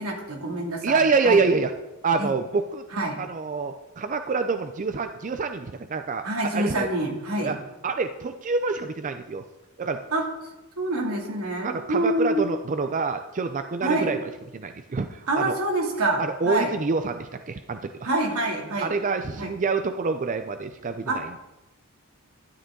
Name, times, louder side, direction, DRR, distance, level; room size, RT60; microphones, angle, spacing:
voice 1, 0.0-1.4 2.2-2.3 2.9-3.2 6.2-7.6 10.1-10.3 10.8-12.4 13.8-14.1 15.3-16.7 18.0-18.9 19.4-19.5 21.1-21.4, right 2 dB, 75° right, 0 dB, 2.5 m, -26 dB
voice 2, 0.8-1.7 2.0-2.8 3.2-6.3 6.5-6.9 7.4-7.6 7.8-9.4 9.8-10.0 11.6-15.6 16.2-18.1 18.8-21.4, right 4 dB, 35° right, 8 dB, 0.4 m, -26 dB
12.0 x 11.0 x 3.8 m, 1.0 s
head